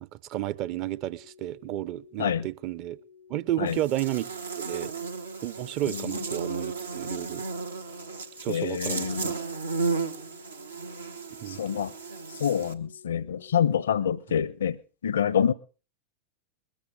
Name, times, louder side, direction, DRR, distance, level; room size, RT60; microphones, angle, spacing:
voice 1, 0.0-3.0 3.3-4.3 4.6-4.9 5.4-7.4 8.4-9.3 11.4-11.6, right 14 dB, 40° right, 0.7 m, -32 dB
sound 1, 0.9-14.1, left 6 dB, 60° right, 2.4 m, -55 dB
Buzz, 3.7-12.7, right 4 dB, 75° right, 1.2 m, -34 dB
voice 2, 8.5-9.3 11.6-11.9 12.4-14.8 15.0-15.5, left 8 dB, 65° left, 0.7 m, -26 dB
21.0 x 13.5 x 3.7 m
figure-of-eight pair, 90°, 0 cm